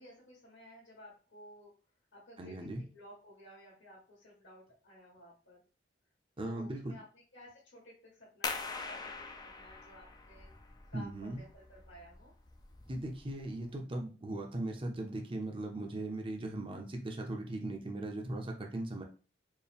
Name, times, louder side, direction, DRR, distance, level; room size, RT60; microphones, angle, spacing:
voice 1, 0.0-1.7 2.1-5.6 6.4-7.0 7.3-10.5 10.9-12.3, left 1 dB, 85° left, -9 dB, 1.8 m, -55 dB
voice 2, 2.4-2.8 6.4-6.9 10.9-11.4 12.9-19.0, right 1 dB, 30° right, 2 dB, 0.7 m, -38 dB
sound 1, 8.4-13.8, left 4 dB, 20° left, 0.3 m, -44 dB
4.5 x 2.2 x 3.4 m, 0.36 s
head